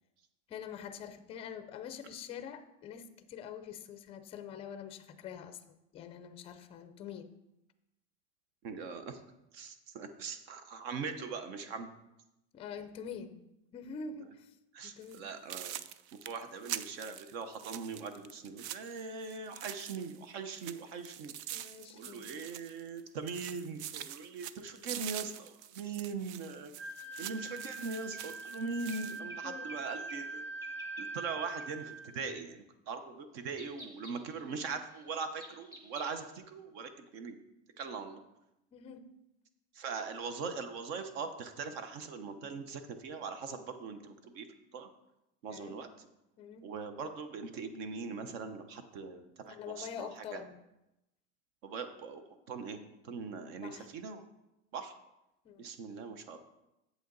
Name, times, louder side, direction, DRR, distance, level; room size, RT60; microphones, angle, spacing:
voice 1, 0.5-5.6 5.9-7.3 12.5-13.4 13.7-14.6 14.8-15.3 21.5-22.3 27.0-27.2 29.4-29.7 38.7-39.1 45.5-45.8 46.4-46.7 49.5-50.6 53.6-53.9 55.4-55.7, left 7 dB, 20° left, 9 dB, 0.4 m, -45 dB
voice 2, 8.6-9.2 9.5-11.9 14.7-15.8 16.1-21.3 21.9-30.4 31.0-37.4 37.8-38.2 39.7-44.5 44.7-44.9 45.4-46.1 46.6-50.4 51.6-52.2 52.5-54.2 54.7-55.0 55.6-56.4, right 4 dB, 65° right, 9 dB, 1.0 m, -41 dB
sound 1, 15.0-15.2 15.5-20.2 20.5-23.0 23.3-29.2, right 11 dB, 85° right, 0.6 m, -45 dB
sound 2, 25.9-26.0 27.3-29.8 30.1-30.3 30.6-31.3 31.6-31.7 32.4-32.6 33.5-36.3, equal, 10° right, 1.1 m, -53 dB
Wind instrument woodwind instrument, 26.8-32.2, right 3 dB, 35° right, 1.2 m, -43 dB
8.4 x 7.8 x 3.9 m, 0.91 s
supercardioid pair, 170°, 33 cm